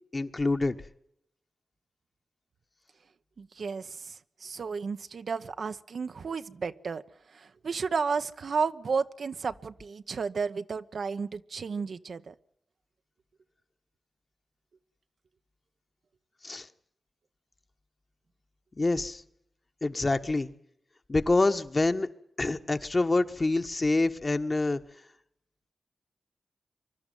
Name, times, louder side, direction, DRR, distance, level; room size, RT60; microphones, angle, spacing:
voice 1, 0.1-0.8 16.4-16.7 18.8-19.2 19.8-20.5 21.1-22.1 22.4-24.8, left 2 dB, 40° left, 8 dB, 1.5 m, -26 dB
voice 2, 3.4-4.1 4.4-7.0 7.3-12.3, right 5 dB, 75° right, 10 dB, 1.0 m, -32 dB
24.0 x 12.0 x 9.2 m, 0.74 s
cardioid pair, 55°, 0 cm